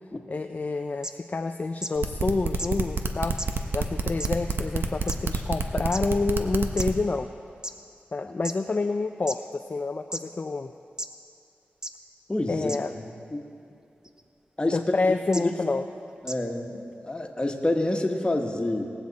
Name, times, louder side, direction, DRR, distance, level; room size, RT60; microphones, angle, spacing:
voice 1, 0.3-3.4 3.7-7.3 8.1-10.7 12.5-12.9 14.7-15.8, left 3 dB, 40° left, 7 dB, 0.4 m, -28 dB
sound 1, 1.0-1.1 1.8-1.9 2.6-2.7 3.4-3.5 4.2-4.3 5.1-5.2 5.9-6.0 6.8-6.9 7.6-7.7 8.4-8.5 9.3-9.4 10.1-10.2 11.0-11.1 11.8-11.9 12.7-12.8 14.0-14.2 15.3-15.4 16.3-16.4, right 1 dB, 15° right, 0.8 m, -33 dB
sound 2, 1.9-6.9, right 4 dB, 70° right, 0.9 m, -28 dB
voice 2, 12.3-13.4 14.6-14.8 15.0-15.5 16.2-18.9, left 1 dB, 25° left, 2 dB, 1.5 m, -28 dB
19.5 x 7.9 x 4.2 m, 2.7 s
cardioid pair, 50°, 4 cm